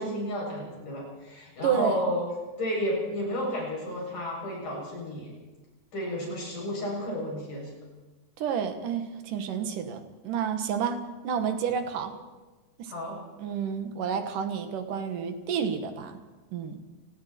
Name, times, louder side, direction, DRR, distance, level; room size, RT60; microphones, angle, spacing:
voice 1, 0.0-2.2 2.6-5.3 5.9-7.7 12.9-13.2, equal, 75° left, -3 dB, 9.2 m, -32 dB
voice 2, 1.6-2.0 8.4-12.2 12.8-12.9 13.4-16.2 16.5-16.8, right 7 dB, 85° right, 8 dB, 3.2 m, -30 dB
29.5 x 20.0 x 4.5 m, 1.2 s
omnidirectional pair, 3.6 m